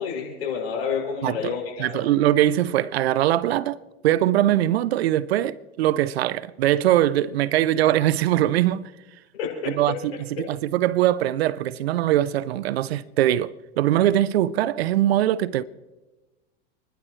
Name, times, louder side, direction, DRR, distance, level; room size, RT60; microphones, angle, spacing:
voice 1, 0.0-2.0 9.3-10.0 10.4-10.5, left 6 dB, 90° left, 6.5 m, -29 dB
voice 2, 1.2-1.5 1.8-3.8 4.0-8.8 9.7-10.1 10.4-15.6, right 13 dB, 85° right, 0.7 m, -22 dB
30.0 x 11.5 x 3.2 m
hypercardioid pair, 100°, 30 cm